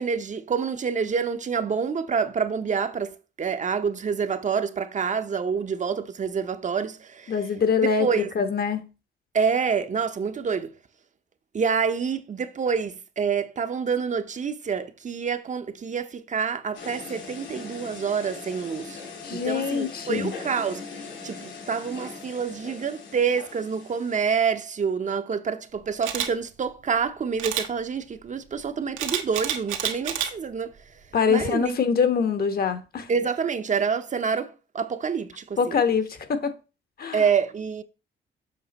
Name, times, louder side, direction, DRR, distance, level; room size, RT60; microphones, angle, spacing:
voice 1, 0.0-7.3 8.0-8.3 9.3-10.7 11.5-19.0 19.3-20.8 21.2-30.7 31.3-31.8 33.1-35.8 37.1-37.8, right 6 dB, 40° right, 0.8 m, -27 dB
voice 2, 7.3-8.9 19.2-20.3 31.1-33.1 35.6-36.6 37.0-37.2, left 6 dB, 50° left, 1.2 m, -24 dB
sound 1, 16.7-24.2, left 4 dB, 65° left, 2.7 m, -40 dB
Camera, 26.0-26.3 27.4-27.7 29.0-30.3 30.8-31.0, right 9 dB, 90° right, 1.3 m, -28 dB
7.2 x 5.6 x 4.1 m
cardioid pair, 90°, 20 cm